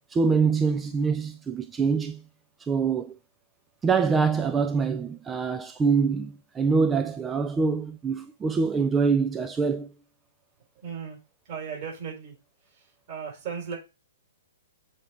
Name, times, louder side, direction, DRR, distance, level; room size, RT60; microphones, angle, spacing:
voice 1, 0.1-2.2 2.6-3.2 3.8-9.9, right 5 dB, 15° right, 0.3 m, -25 dB
voice 2, 10.8-11.2 11.4-12.4 12.7-13.8, right 6 dB, 40° right, 4.0 m, -36 dB
7.1 x 4.7 x 3.3 m
figure-of-eight pair, 115°, 0 cm